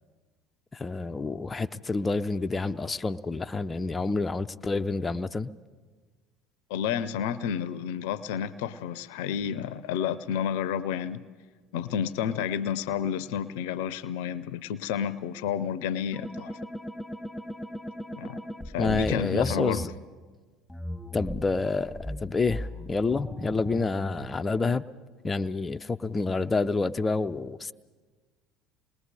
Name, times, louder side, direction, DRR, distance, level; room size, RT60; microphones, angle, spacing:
voice 1, 0.7-5.5 18.8-19.9 21.1-24.8 25.2-27.7, left 3 dB, 25° left, 0.6 m, -28 dB
voice 2, 6.7-11.2 11.7-16.6 18.1-18.4 18.7-19.9, left 8 dB, 70° left, 0.6 m, -30 dB
sound 1, 16.1-19.9 20.7-24.3, left 1 dB, 5° left, 1.6 m, -37 dB
27.5 x 20.5 x 4.9 m
hypercardioid pair, 65°, 0 cm